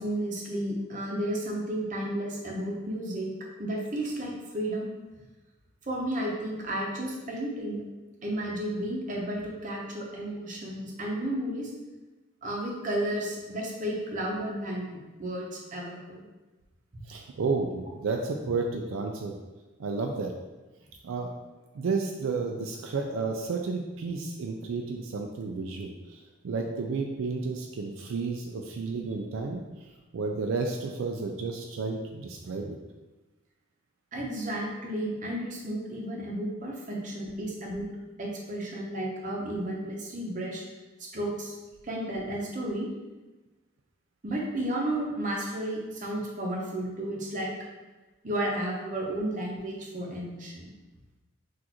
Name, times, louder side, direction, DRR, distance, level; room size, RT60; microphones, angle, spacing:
voice 1, 0.0-3.3 3.6-4.9 5.9-7.8 8.2-11.7 12.4-16.2 16.9-17.0 34.1-37.9 38.2-40.6 41.0-41.5 41.8-42.9 44.2-47.5 48.2-50.7, right 1 dB, 35° right, -1 dB, 0.7 m, -32 dB
voice 2, 17.1-19.3 19.8-20.3 21.0-21.3 21.7-32.8, right 4 dB, 75° right, 2 dB, 0.4 m, -32 dB
6.1 x 2.5 x 2.9 m, 1.2 s
head